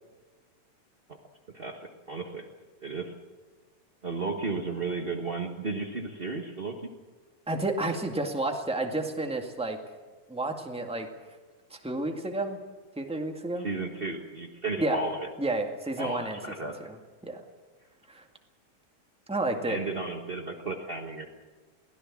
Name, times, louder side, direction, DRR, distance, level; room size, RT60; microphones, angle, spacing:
voice 1, 1.5-2.5 2.8-3.1 4.0-6.8 13.6-15.3 16.0-16.7 19.7-21.3, right 3 dB, 70° right, 2 dB, 0.5 m, -34 dB
voice 2, 7.5-9.8 10.3-11.1 11.7-12.6 13.0-13.7 14.8-15.0 15.4-17.0 17.2-17.4 18.1-18.2 19.3-19.8, right 2 dB, 5° right, 3 dB, 1.0 m, -31 dB
23.0 x 17.0 x 7.4 m, 1.3 s
omnidirectional pair, 3.7 m